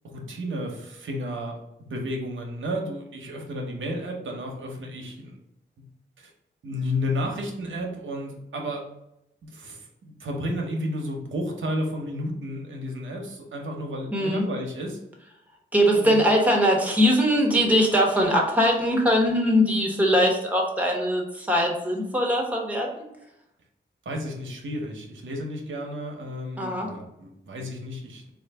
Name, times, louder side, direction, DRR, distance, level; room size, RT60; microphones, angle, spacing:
voice 1, 0.0-5.4 5.8-5.9 6.2-6.3 6.6-8.8 9.4-15.0 16.0-16.2 24.0-28.3, equal, 75° right, 1 dB, 0.9 m, -32 dB
voice 2, 14.1-14.4 15.7-23.0 26.6-26.9, equal, 5° right, 0 dB, 1.1 m, -21 dB
3.8 x 2.4 x 3.4 m, 0.84 s
cardioid pair, 70°, 20 cm